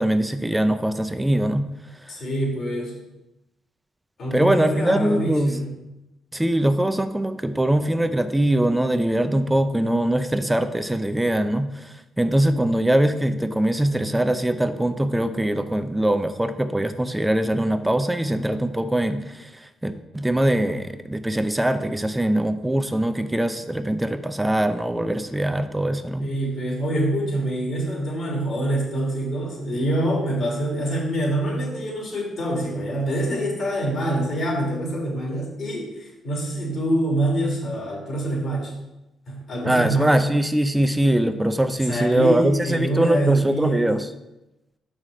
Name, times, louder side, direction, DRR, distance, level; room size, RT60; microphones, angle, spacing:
voice 1, 0.0-1.6 4.3-5.5 6.3-11.9 12.2-19.5 19.8-26.3 39.6-44.1, right 1 dB, 10° right, 10 dB, 0.5 m, -22 dB
voice 2, 2.1-3.0 4.2-5.7 26.2-38.7 39.3-40.1 41.8-43.8, right 1 dB, 60° left, -3 dB, 3.0 m, -25 dB
6.2 x 5.6 x 4.9 m, 0.95 s
cardioid pair, 90°, 0 cm